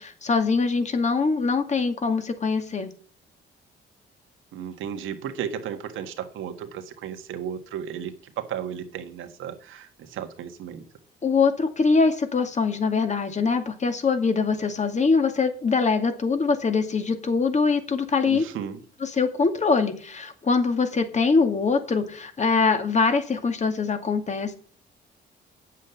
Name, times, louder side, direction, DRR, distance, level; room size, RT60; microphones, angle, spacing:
voice 1, 0.0-2.9 11.2-18.4 19.0-24.5, left 4 dB, 35° left, 7 dB, 2.2 m, -23 dB
voice 2, 4.5-10.9 18.2-18.8, right 8 dB, 85° right, 7 dB, 1.7 m, -34 dB
9.4 x 7.5 x 6.9 m, 0.42 s
cardioid pair, 90°, 20 cm